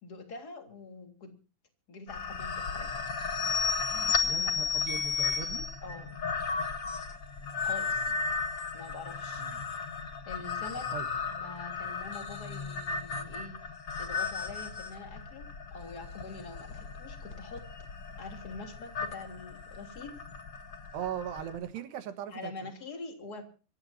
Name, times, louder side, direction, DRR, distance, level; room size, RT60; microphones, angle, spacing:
voice 1, 0.0-1.4 1.9-3.1 4.2-5.0 5.8-6.1 7.6-8.1 8.7-9.4 10.2-10.9 11.3-13.6 14.0-17.6 18.2-20.2 22.3-23.4, left 3 dB, 25° left, 5 dB, 3.2 m, -45 dB
sound 1, 2.1-21.6, left 5 dB, 85° left, 1.0 m, -34 dB
voice 2, 4.2-5.7 9.4-9.6 10.9-11.1 20.9-22.7, right 9 dB, 70° right, 10 dB, 3.5 m, -39 dB
25.5 x 15.5 x 2.8 m, 0.35 s
omnidirectional pair, 5.1 m